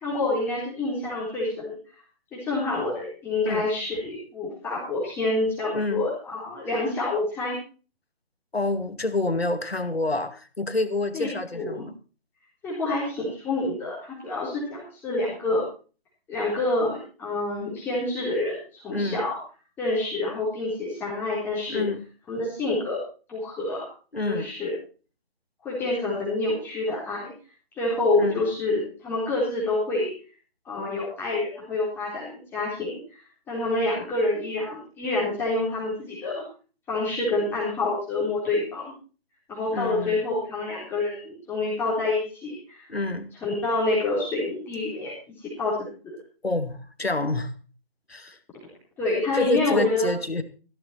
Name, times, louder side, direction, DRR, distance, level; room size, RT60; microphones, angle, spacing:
voice 1, 0.0-1.8 2.3-7.6 11.1-11.8 12.6-15.6 16.3-19.3 19.8-21.8 22.3-23.0 23.3-23.8 24.3-24.7 25.6-27.3 27.7-30.1 30.7-33.2 33.5-36.4 36.9-38.9 39.5-42.9 43.4-45.8 49.0-50.1, left 2 dB, 5° left, -6 dB, 3.9 m, -27 dB
voice 2, 5.7-6.0 8.5-12.0 18.9-19.3 21.7-22.0 24.1-24.5 28.2-28.4 39.7-40.2 42.9-43.3 46.4-47.5 48.1-48.4 49.3-50.4, left 2 dB, 80° left, 11 dB, 2.1 m, -28 dB
15.5 x 12.5 x 4.4 m, 0.37 s
figure-of-eight pair, 150°, 30 cm